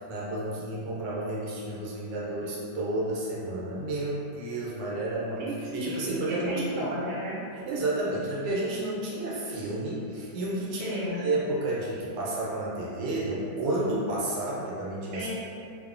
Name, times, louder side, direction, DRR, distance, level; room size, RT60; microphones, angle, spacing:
voice 1, 0.0-5.4 5.7-6.9 7.7-15.3, right 2 dB, 90° right, -5 dB, 1.3 m, -31 dB
voice 2, 5.4-6.0 6.3-7.4 10.8-11.1 15.1-15.3, right 1 dB, 70° right, -8 dB, 1.3 m, -34 dB
3.1 x 2.1 x 2.4 m, 2.5 s
omnidirectional pair, 1.9 m